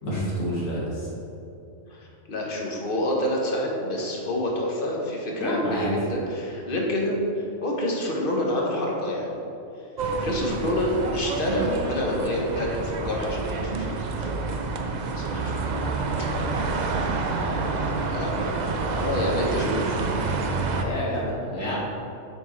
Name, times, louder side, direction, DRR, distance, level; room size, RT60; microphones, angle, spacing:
voice 1, 0.0-1.1 5.4-6.0 15.6-16.6 17.3-17.8 19.7-21.8, equal, 80° left, -6 dB, 2.2 m, -31 dB
voice 2, 2.3-7.2 7.6-9.4 10.2-14.3 15.2-15.7 16.3-16.4 18.1-20.0, left 1 dB, 45° left, -2 dB, 1.2 m, -28 dB
sound 1, 10.0-20.8, right 3 dB, 60° right, 0.4 m, -28 dB
8.0 x 6.1 x 3.2 m, 2.7 s
omnidirectional pair, 1.4 m